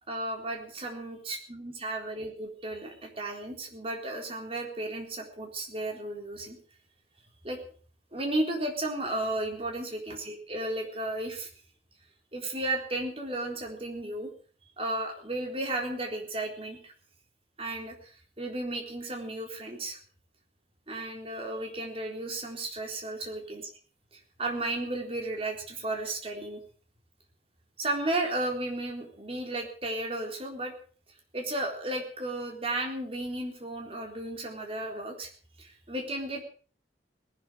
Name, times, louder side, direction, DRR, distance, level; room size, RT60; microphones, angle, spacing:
voice 1, 0.1-6.6 7.4-7.6 8.1-11.5 12.3-14.3 14.8-16.9 17.6-20.0 20.9-23.7 24.4-26.6 27.8-30.7 31.3-35.3 35.6-36.4, right 2 dB, 30° right, 2 dB, 3.9 m, -34 dB
18.5 x 12.0 x 6.4 m, 0.42 s
head